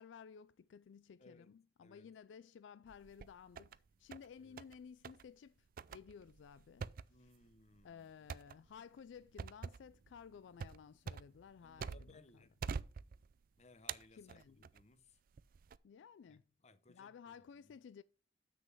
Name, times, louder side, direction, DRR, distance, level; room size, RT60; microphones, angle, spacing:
voice 1, 0.0-6.9 7.2-7.3 7.8-12.5 14.1-14.7 15.8-16.4 16.9-18.0, left 7 dB, 80° left, 0.3 m, -56 dB
voice 2, 1.2-1.5 1.8-2.1 4.4-4.6 7.1-8.1 11.6-12.6 13.6-15.2 16.3-17.3 17.6-17.8, left 2 dB, 40° left, 0.8 m, -64 dB
sound 1, 2.9-3.8 4.1-4.8 5.0-5.3 5.8-12.3 12.6-13.4 13.9-14.8 15.4-15.8, right 5 dB, 50° right, 0.4 m, -46 dB
7.6 x 6.5 x 4.6 m
head